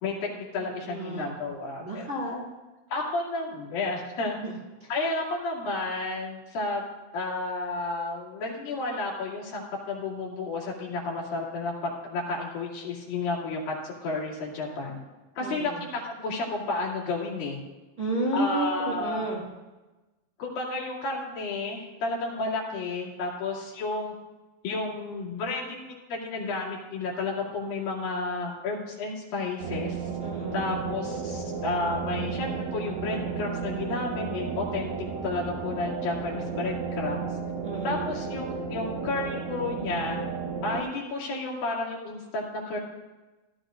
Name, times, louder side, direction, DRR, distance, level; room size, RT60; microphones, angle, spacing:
voice 1, 0.0-2.1 2.9-4.3 4.9-6.8 7.1-15.0 15.4-17.6 18.3-19.5 20.4-24.1 24.6-30.1 30.5-34.9 35.2-37.3 37.8-40.2 40.6-42.8, left 3 dB, 75° left, -4 dB, 4.2 m, -32 dB
voice 2, 0.9-1.3 1.8-2.5 4.4-4.5 4.8-4.9 15.4-15.8 18.0-19.4 30.2-31.1 37.6-38.2, right 1 dB, 25° right, -5 dB, 2.2 m, -32 dB
sound 1, 29.6-40.8, right 5 dB, 60° right, 2.4 m, -33 dB
17.0 x 13.0 x 2.5 m, 1.1 s
omnidirectional pair, 4.1 m